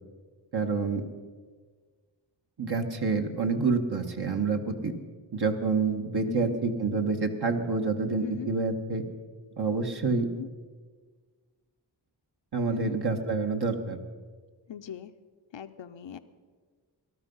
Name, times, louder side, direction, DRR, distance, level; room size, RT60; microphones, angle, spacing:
voice 1, 0.5-1.0 2.6-4.9 5.3-9.0 9.6-10.3 12.5-14.0, right 4 dB, 60° right, 4 dB, 1.6 m, -28 dB
voice 2, 6.2-6.6 8.2-8.5 10.1-10.5 12.7-13.0 14.7-15.1 15.5-16.2, left 9 dB, 85° left, 10 dB, 0.7 m, -39 dB
19.0 x 12.5 x 5.5 m, 1.5 s
wide cardioid pair, 55°, 44 cm